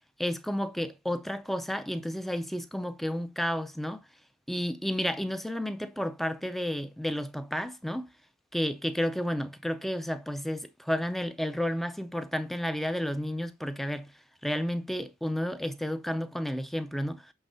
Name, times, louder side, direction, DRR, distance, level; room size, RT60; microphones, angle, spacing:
voice 1, 0.2-4.0 4.5-8.1 8.5-14.1 14.4-17.3, equal, ahead, 0.4 m, -31 dB
7.9 x 3.4 x 4.3 m
head